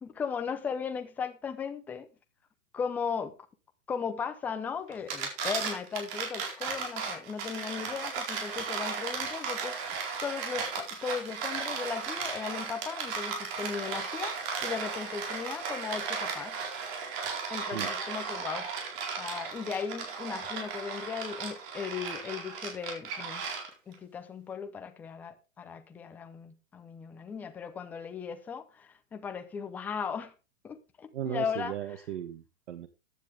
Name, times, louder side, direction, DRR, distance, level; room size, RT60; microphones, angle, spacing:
voice 1, 0.0-2.1 2.7-3.3 3.9-9.9 10.2-16.6 17.5-18.7 19.2-23.4 23.9-30.3 30.6-31.8, left 6 dB, 5° left, 0.5 m, -37 dB
sound 1, 4.9-23.9, right 5 dB, 30° right, 4.4 m, -35 dB
voice 2, 31.1-32.9, right 11 dB, 65° right, 1.6 m, -36 dB
15.0 x 9.9 x 3.5 m
hypercardioid pair, 155°, 39 cm